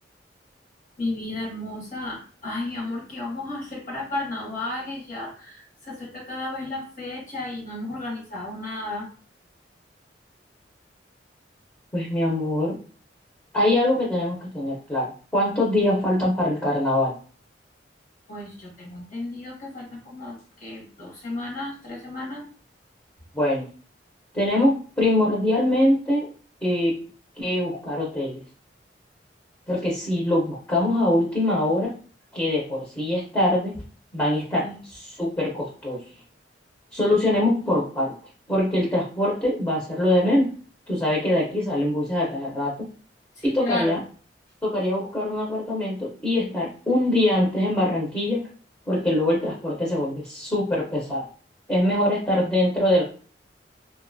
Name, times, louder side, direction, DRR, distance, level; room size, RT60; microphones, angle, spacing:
voice 1, 1.0-9.1 18.3-22.5 34.6-34.8 43.4-44.0, left 2 dB, 45° left, -2 dB, 1.0 m, -33 dB
voice 2, 11.9-12.8 13.5-15.1 15.3-17.2 23.3-23.7 24.3-26.3 26.6-27.0 27.4-28.4 29.7-31.9 32.3-33.8 34.1-36.0 36.9-38.1 38.5-40.5 40.9-42.9 43.4-44.0 44.6-48.4 48.9-51.2 51.7-53.0, left 1 dB, 10° left, -4 dB, 0.6 m, -23 dB
2.6 x 2.2 x 2.5 m, 0.41 s
head